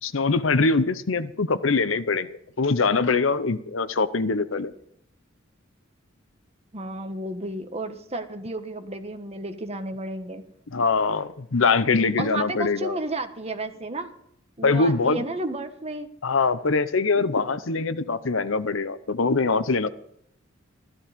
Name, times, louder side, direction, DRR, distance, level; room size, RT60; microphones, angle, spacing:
voice 1, 0.0-4.7 10.7-13.0 14.6-15.2 16.2-19.9, left 4 dB, 70° left, 14 dB, 0.8 m, -23 dB
voice 2, 6.7-10.4 12.2-14.1 14.6-16.1, right 2 dB, 30° right, 7 dB, 1.4 m, -32 dB
15.0 x 13.0 x 5.2 m, 0.71 s
head